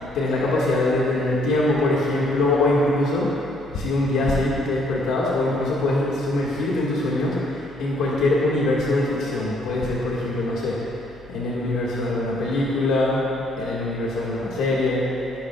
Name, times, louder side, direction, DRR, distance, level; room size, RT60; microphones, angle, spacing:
voice 1, 0.0-3.3 3.7-10.8 11.3-15.1, left 2 dB, 85° left, -5 dB, 1.9 m, -23 dB
16.0 x 15.5 x 2.4 m, 2.9 s
cardioid pair, 90°, 0 cm